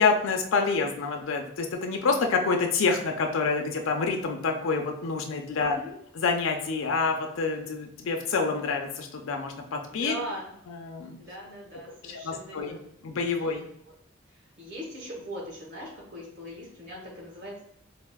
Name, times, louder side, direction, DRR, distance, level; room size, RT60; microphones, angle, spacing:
voice 1, 0.0-5.7 6.1-10.1 10.7-11.2 12.1-12.8 13.0-13.7, left 4 dB, 80° left, 3 dB, 0.5 m, -27 dB
voice 2, 5.5-6.0 9.9-10.5 11.2-13.1 13.9-14.0 14.3-17.6, right 1 dB, 55° right, -3 dB, 1.0 m, -40 dB
4.1 x 2.0 x 2.2 m, 0.73 s
head